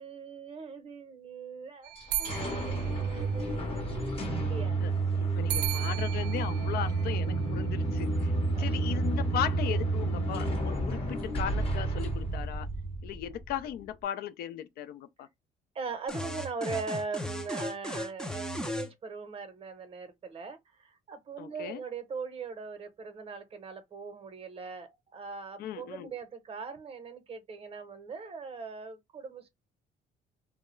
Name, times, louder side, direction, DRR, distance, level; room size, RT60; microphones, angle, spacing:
voice 1, 0.0-1.9 2.2-4.0 4.4-4.8 8.6-8.8 15.7-29.5, right 5 dB, 35° right, 0.7 m, -40 dB
sound 1, 1.8-3.8 5.5-7.9, right 10 dB, 90° right, 0.5 m, -38 dB
sound 2, 2.0-13.6, right 3 dB, 35° left, 0.8 m, -30 dB
voice 2, 5.2-12.7 13.0-15.3 21.4-21.8 25.6-26.1, left 10 dB, 65° left, 0.4 m, -37 dB
sound 3, 16.1-18.9, left 1 dB, 5° left, 0.4 m, -36 dB
2.2 x 2.0 x 3.0 m
cardioid pair, 110°, 17 cm